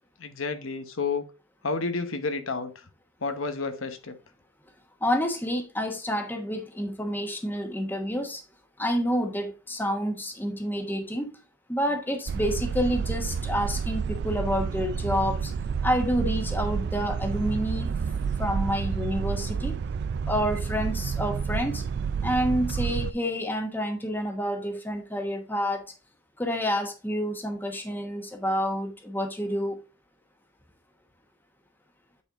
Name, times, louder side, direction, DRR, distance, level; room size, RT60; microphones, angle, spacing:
voice 1, 0.2-1.2 1.6-2.9 3.2-4.2, left 4 dB, 85° left, 1.0 m, -30 dB
voice 2, 5.0-8.4 8.8-11.3 11.7-15.5 15.8-17.9 18.4-19.7 20.3-21.8 22.2-25.9 26.4-29.8, equal, 10° left, 1.0 m, -28 dB
sound 1, 12.3-23.1, right 6 dB, 55° right, 0.3 m, -29 dB
8.7 x 4.3 x 3.6 m
head